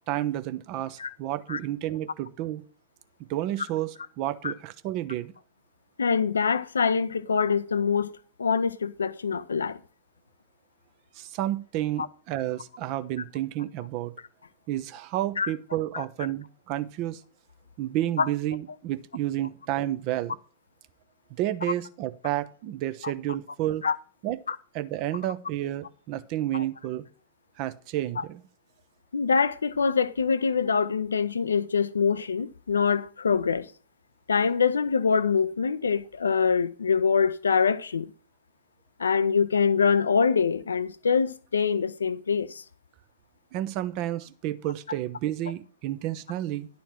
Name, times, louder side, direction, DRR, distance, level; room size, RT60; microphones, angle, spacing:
voice 1, 0.1-2.6 3.3-5.3 11.1-14.1 14.7-17.2 17.8-20.4 21.4-23.9 24.2-24.4 24.7-27.0 27.6-28.4 43.5-46.7, right 13 dB, 45° right, 0.7 m, -31 dB
voice 2, 6.0-9.8 12.0-12.1 15.4-15.5 15.9-16.0 18.2-18.3 23.0-23.1 23.8-24.0 24.5-24.6 26.5-26.6 28.2-28.3 29.1-33.7 34.3-38.1 39.0-42.6, left 6 dB, 75° left, 0.4 m, -24 dB
11.0 x 4.3 x 7.2 m
figure-of-eight pair, 90°, 0 cm